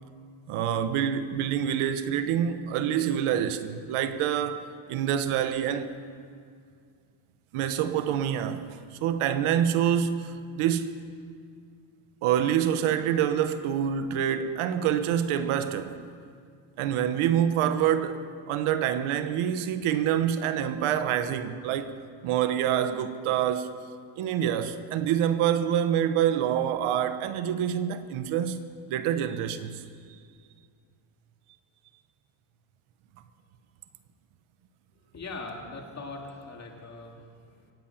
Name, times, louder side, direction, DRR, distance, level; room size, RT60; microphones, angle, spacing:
voice 1, 0.5-5.9 7.5-11.0 12.2-16.0 16.8-21.9 22.2-23.7 24.2-29.8, right 9 dB, 75° right, 1.0 m, -26 dB
voice 2, 35.1-37.7, left 3 dB, 30° left, 2.5 m, -41 dB
24.0 x 9.0 x 5.8 m
cardioid pair, 125°, 50 cm